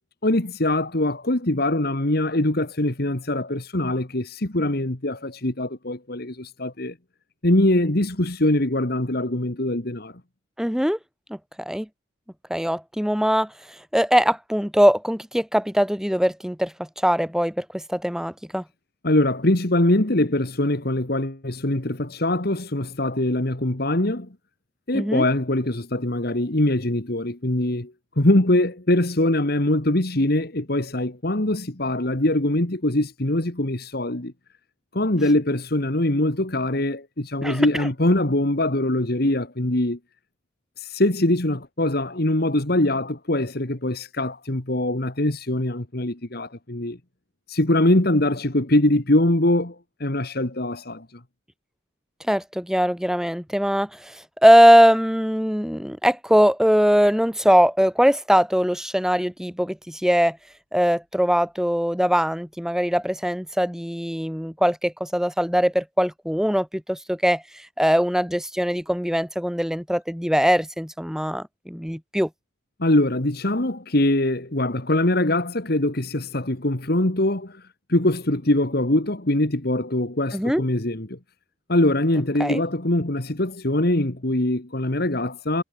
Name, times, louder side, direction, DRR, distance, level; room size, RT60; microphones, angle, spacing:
voice 1, 0.2-6.9 7.4-10.1 19.0-24.3 24.9-34.3 34.9-40.0 40.8-47.0 47.5-49.8 50.0-51.1 72.8-77.6 77.9-81.2 81.7-85.6, left 1 dB, 50° left, 2.0 m, -23 dB
voice 2, 10.6-11.0 11.3-11.9 12.5-13.5 13.9-18.6 24.9-25.2 37.4-37.9 52.3-60.4 60.7-67.4 67.8-72.3 80.3-80.6 82.4-82.6, equal, 5° right, 5.6 m, -21 dB
head